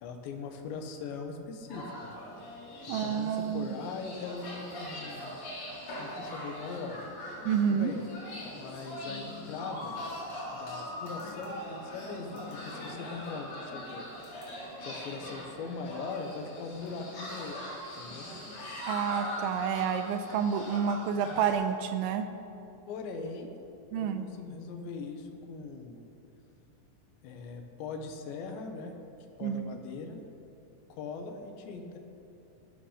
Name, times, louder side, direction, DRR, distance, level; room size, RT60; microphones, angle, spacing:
voice 1, 0.0-2.1 2.9-5.4 6.0-7.0 7.7-8.0 8.5-10.0 10.5-14.0 14.8-17.6 18.0-18.3 22.9-23.5 23.9-26.0 27.2-29.0 29.4-30.2 30.9-32.0, left 4 dB, 70° left, 4 dB, 3.2 m, -40 dB
sound 1, 1.7-21.5, left 1 dB, 40° left, 4.9 m, -41 dB
voice 2, 2.9-3.7 7.5-7.9 18.9-22.3 23.9-24.2 29.4-29.8, right 7 dB, 85° right, 8 dB, 2.8 m, -29 dB
20.0 x 12.0 x 5.8 m, 2.9 s
omnidirectional pair, 6.0 m